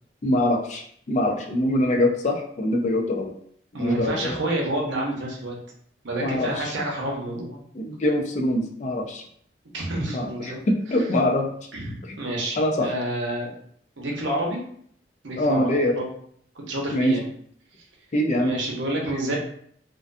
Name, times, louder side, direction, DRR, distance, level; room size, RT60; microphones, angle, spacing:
voice 1, 0.2-3.3 3.8-4.4 6.2-6.7 7.7-9.2 10.1-11.5 12.0-12.2 12.6-12.9 15.4-16.0 16.9-17.1 18.1-18.6, left 1 dB, 40° left, 2 dB, 0.3 m, -24 dB
voice 2, 3.7-5.6 6.0-7.6 9.7-10.6 11.7-12.6 12.8-13.5 14.0-14.6 15.2-16.1 16.6-17.3 18.4-19.4, right 1 dB, 85° right, -2 dB, 0.7 m, -29 dB
2.4 x 2.2 x 2.5 m, 0.63 s
head